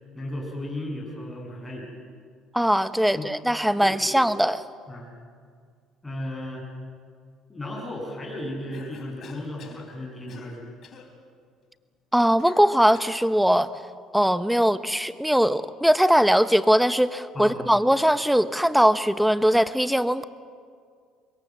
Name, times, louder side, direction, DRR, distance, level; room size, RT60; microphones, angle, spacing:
voice 1, 0.1-1.9 3.1-3.3 3.8-4.1 4.9-5.1 6.0-6.7 7.5-10.7 17.3-17.6, left 1 dB, 15° left, 0 dB, 7.7 m, -35 dB
voice 2, 2.5-4.6 12.1-13.7 14.1-20.2, equal, ahead, 13 dB, 0.9 m, -21 dB
Cough, 8.7-9.9 10.3-10.6 10.8-11.1 12.4-13.3, left 6 dB, 50° left, 3.8 m, -47 dB
25.0 x 22.0 x 7.6 m, 2.1 s
supercardioid pair, 95°, 0 cm